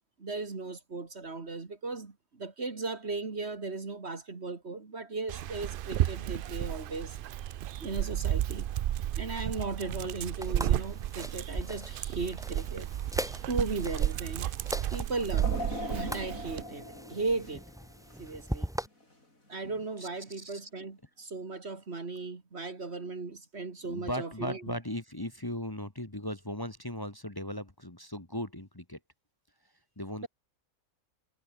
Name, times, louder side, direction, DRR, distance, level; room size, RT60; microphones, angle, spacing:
voice 1, 0.2-7.2 7.8-8.7 9.1-12.9 13.5-14.5 14.9-15.6 15.9-17.6 18.2-18.7 19.5-24.8, right 3 dB, 50° right, 2.4 m, -36 dB
Dog, 5.3-16.6, right 12 dB, 85° right, 0.4 m, -33 dB
sound 1, 10.4-18.9, equal, 5° right, 1.2 m, -40 dB
sound 2, 15.4-18.6 19.0-19.1 20.2-20.3, left 1 dB, 70° left, 8.2 m, -40 dB
voice 2, 19.6-20.6 23.8-29.0 30.0-30.3, equal, 15° left, 2.0 m, -38 dB
omnidirectional pair, 1.5 m